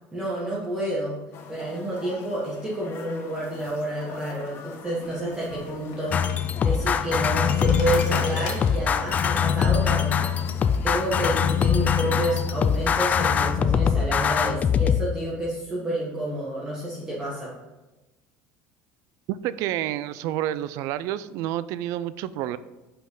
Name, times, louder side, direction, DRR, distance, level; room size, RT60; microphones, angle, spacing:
voice 1, 0.1-1.2 1.5-6.2 6.6-10.5 10.8-17.5, right 1 dB, 15° right, -6 dB, 1.4 m, -29 dB
sound 1, 1.3-13.6, left 5 dB, 45° left, 1.0 m, -43 dB
sound 2, 5.0-11.7, left 4 dB, 80° left, 1.5 m, -42 dB
sound 3, 6.1-15.0, left 7 dB, 25° left, 0.3 m, -23 dB
voice 2, 19.3-22.6, right 12 dB, 60° right, 15 dB, 0.4 m, -29 dB
5.6 x 5.2 x 5.3 m, 1.1 s
cardioid pair, 145°, 6 cm